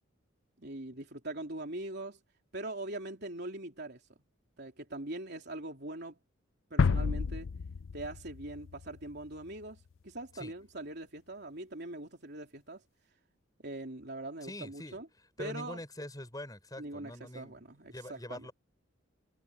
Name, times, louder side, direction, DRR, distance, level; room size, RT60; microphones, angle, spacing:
voice 1, 0.6-2.2 2.5-4.0 4.6-6.2 6.7-7.5 7.9-12.8 13.6-15.1 15.4-15.8 16.8-18.5, right 2 dB, 55° right, 3.4 m, -42 dB
sound 1, 6.8-9.6, left 5 dB, 75° left, 0.5 m, -31 dB
voice 2, 14.4-15.0 15.4-18.5, left 1 dB, 20° left, 5.6 m, -44 dB
head